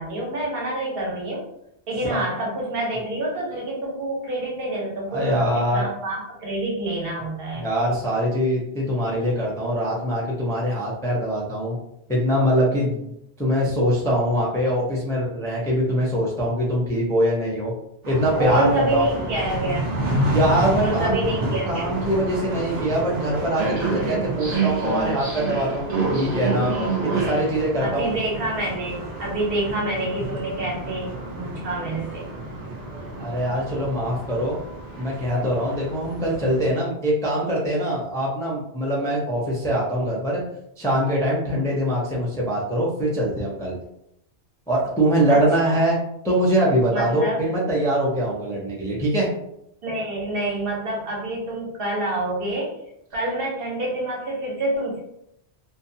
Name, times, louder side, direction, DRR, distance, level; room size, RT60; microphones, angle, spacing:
voice 1, 0.0-1.5 1.9-7.7 18.4-19.9 20.7-21.9 27.8-32.3 41.5-41.7 45.3-45.8 46.9-47.4 49.8-52.8 53.1-55.0, right 1 dB, 65° right, -3 dB, 1.0 m, -27 dB
voice 2, 5.1-5.9 7.6-11.8 12.1-13.1 13.4-17.7 18.1-19.1 20.3-21.2 21.6-26.7 27.0-28.1 33.2-34.6 34.9-40.4 40.8-43.7 44.7-46.0 46.2-49.3, equal, 5° left, -5 dB, 0.4 m, -23 dB
sound 1, 18.0-36.7, right 2 dB, 50° right, 0.6 m, -28 dB
2.7 x 2.2 x 2.6 m, 0.79 s
omnidirectional pair, 1.1 m